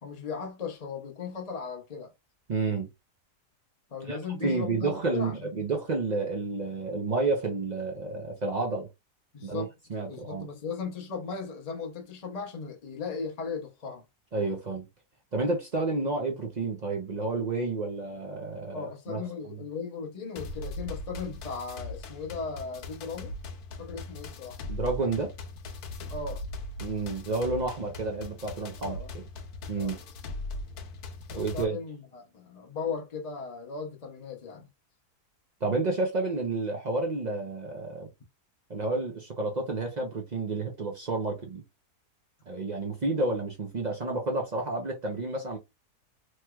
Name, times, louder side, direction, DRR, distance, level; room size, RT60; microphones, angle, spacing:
voice 1, 0.0-2.1 3.9-5.5 9.3-9.7 10.1-14.0 18.7-23.3 23.7-24.6 26.1-26.4 28.8-29.1 29.8-30.0 31.3-34.7, left 5 dB, 50° left, 0.4 m, -37 dB
voice 2, 2.5-2.9 4.1-8.9 9.4-10.5 14.3-14.8 15.3-19.2 19.5-19.6 24.7-25.3 26.8-29.0 29.7-30.0 31.3-31.8 35.6-38.1 38.7-41.6 42.5-45.6, right 3 dB, 60° right, 0.4 m, -30 dB
sound 1, 20.4-31.6, left 2 dB, 75° left, 1.1 m, -40 dB
3.1 x 3.0 x 2.3 m
omnidirectional pair, 1.7 m